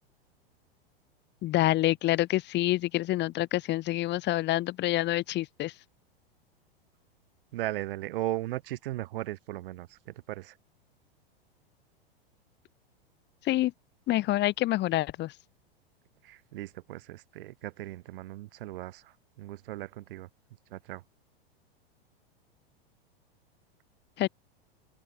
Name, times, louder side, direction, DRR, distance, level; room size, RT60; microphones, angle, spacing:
voice 1, 1.4-5.7 13.4-13.7 14.1-15.3 24.2-24.3, left 16 dB, 35° left, 1.9 m, -27 dB
voice 2, 7.5-10.0 10.3-10.5 16.2-19.0 19.4-20.3 20.7-21.0, right 16 dB, 60° right, 2.7 m, -37 dB
open air
hypercardioid pair, 100°, 30 cm